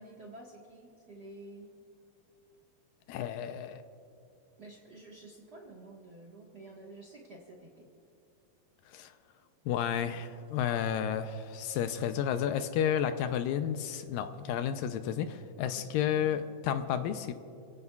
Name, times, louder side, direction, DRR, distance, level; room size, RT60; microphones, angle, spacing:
voice 1, 0.0-1.7 4.6-7.9 15.7-16.3, right 2 dB, 75° right, -2 dB, 0.9 m, -50 dB
voice 2, 3.1-3.8 8.9-9.1 9.7-17.3, left 9 dB, 80° left, 9 dB, 2.2 m, -31 dB
27.5 x 16.5 x 2.4 m, 2.6 s
omnidirectional pair, 4.3 m